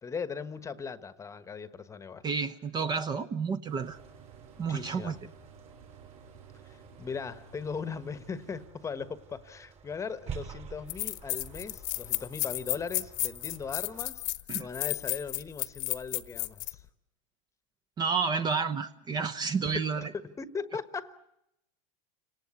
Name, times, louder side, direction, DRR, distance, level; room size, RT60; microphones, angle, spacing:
voice 1, 0.0-2.2 4.6-5.2 6.6-14.2 14.6-16.8 19.7-21.1, left 5 dB, 15° left, 1.2 m, -39 dB
voice 2, 2.2-4.0 4.6-5.1 14.5-14.7 18.0-20.1, right 5 dB, 25° right, 0.9 m, -30 dB
sound 1, 3.6-8.7, right 5 dB, 85° right, 2.7 m, -55 dB
sound 2, 3.8-14.1, right 7 dB, 40° right, 3.2 m, -49 dB
sound 3, 10.3-10.4 10.9-16.7, left 22 dB, 60° left, 1.2 m, -33 dB
29.0 x 18.5 x 8.4 m
supercardioid pair, 125°, 18 cm